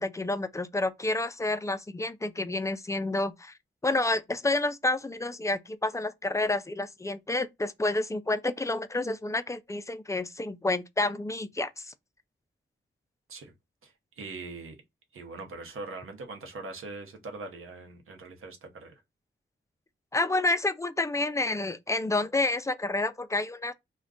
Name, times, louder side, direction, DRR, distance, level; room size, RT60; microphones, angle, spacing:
voice 1, 0.0-3.5 3.8-11.9 20.1-23.7, left 2 dB, 15° left, 0.3 m, -29 dB
voice 2, 13.8-14.8 15.1-19.0, right 3 dB, 85° right, 0.8 m, -42 dB
2.4 x 2.2 x 3.6 m
cardioid pair, 75°, 21 cm